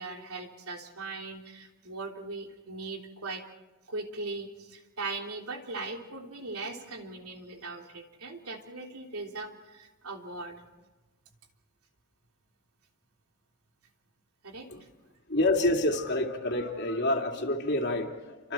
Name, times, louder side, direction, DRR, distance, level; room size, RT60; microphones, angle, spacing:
voice 1, 0.0-3.4 3.9-10.6 14.4-14.7, right 3 dB, 85° right, 2 dB, 3.3 m, -39 dB
voice 2, 15.3-18.5, left 1 dB, 50° left, 2 dB, 2.8 m, -28 dB
28.5 x 25.5 x 4.5 m, 1.1 s
head